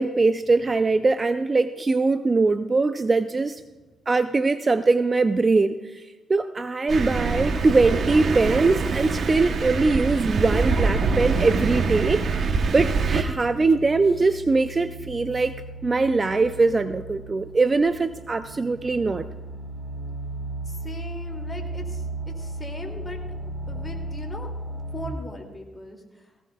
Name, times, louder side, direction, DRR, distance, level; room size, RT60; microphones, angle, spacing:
voice 1, 0.0-3.6 4.1-6.0 6.3-15.5 15.8-19.3, right 3 dB, 25° right, 10 dB, 0.4 m, -22 dB
Thunder, 6.9-13.2, right 4 dB, 50° right, 0.8 m, -24 dB
sound 1, 12.7-25.1, right 2 dB, 10° right, 4.6 m, -36 dB
voice 2, 20.6-22.1 22.4-23.4 23.7-24.5 24.9-26.3, left 1 dB, 20° left, 1 dB, 2.4 m, -39 dB
18.5 x 17.0 x 2.3 m, 1.2 s
cardioid pair, 105°, 0 cm